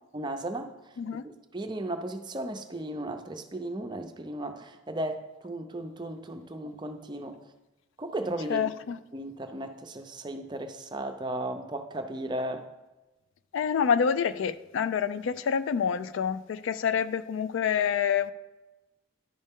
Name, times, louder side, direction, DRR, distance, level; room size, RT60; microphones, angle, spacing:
voice 1, 0.1-0.7 1.5-7.4 8.0-8.7 9.1-12.7, right 1 dB, 20° right, 0.5 m, -35 dB
voice 2, 8.5-9.0 13.5-18.3, left 7 dB, 75° left, 0.3 m, -27 dB
10.5 x 5.4 x 3.6 m
head